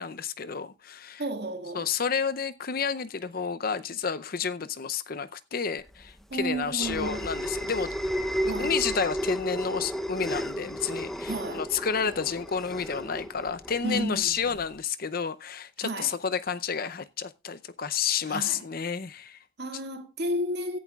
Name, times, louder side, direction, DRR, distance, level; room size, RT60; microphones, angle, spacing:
voice 1, 0.0-1.2 1.7-7.9 8.4-19.4, left 6 dB, 45° left, 0.6 m, -30 dB
voice 2, 1.2-1.9 6.3-7.3 8.4-8.8 11.2-11.6 13.8-14.6 15.8-16.1 18.3-18.6 19.6-20.8, right 1 dB, 55° right, 2.0 m, -32 dB
sound 1, 5.9-14.7, equal, ahead, 0.7 m, -33 dB
16.5 x 11.0 x 2.4 m
head